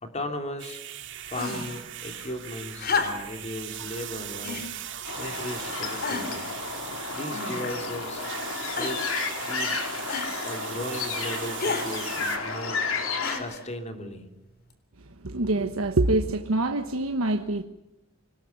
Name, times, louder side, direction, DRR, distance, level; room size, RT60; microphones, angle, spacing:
voice 1, 0.0-0.8 1.2-4.6 5.2-6.5 7.1-8.3 8.7-9.1 9.3-9.8 10.4-12.8 13.3-14.3, left 1 dB, 35° left, 5 dB, 3.1 m, -36 dB
sound 1, 0.6-12.4, right 10 dB, 60° right, 2.6 m, -39 dB
sound 2, 1.3-1.8 2.8-3.4 4.4-4.7 5.4-5.5 6.0-6.5 7.3-7.8 8.8-9.2 10.1-10.4 11.6-11.9 13.2-13.7 14.7-14.8, left 4 dB, 50° left, 3.5 m, -31 dB
sound 3, 5.0-13.4, left 4 dB, 70° left, 4.4 m, -32 dB
voice 2, 15.2-17.6, right 2 dB, 85° right, 6 dB, 1.2 m, -25 dB
25.0 x 19.5 x 7.0 m, 0.97 s
head